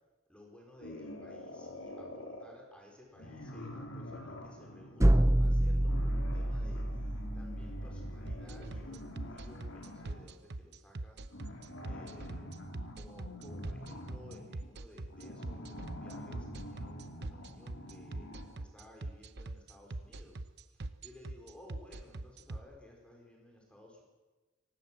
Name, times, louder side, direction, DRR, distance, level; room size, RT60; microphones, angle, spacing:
voice 1, 0.3-12.5 12.9-18.3 18.6-24.0, left 1 dB, 5° left, 0 dB, 4.8 m, -57 dB
sound 1, 0.8-2.5 3.2-10.3 11.3-18.7, left 1 dB, 75° left, 4.5 m, -46 dB
sound 2, 5.0-8.9, right 1 dB, 15° right, 0.7 m, -28 dB
sound 3, 8.3-22.6, right 2 dB, 60° right, 1.0 m, -41 dB
24.5 x 19.0 x 7.6 m, 1.2 s
head